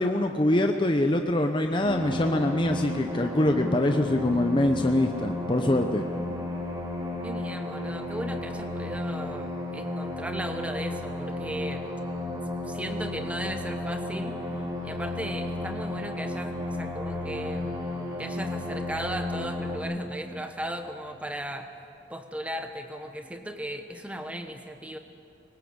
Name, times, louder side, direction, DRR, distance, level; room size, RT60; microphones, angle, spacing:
voice 1, 0.0-6.0, left 1 dB, 25° left, 5 dB, 0.7 m, -24 dB
sound 1, 1.8-19.8, left 1 dB, 25° right, 3.1 m, -33 dB
voice 2, 7.2-11.8 12.7-17.8 18.2-21.7 22.1-25.0, equal, 5° right, 6 dB, 1.2 m, -36 dB
20.5 x 19.0 x 8.0 m, 2.7 s
head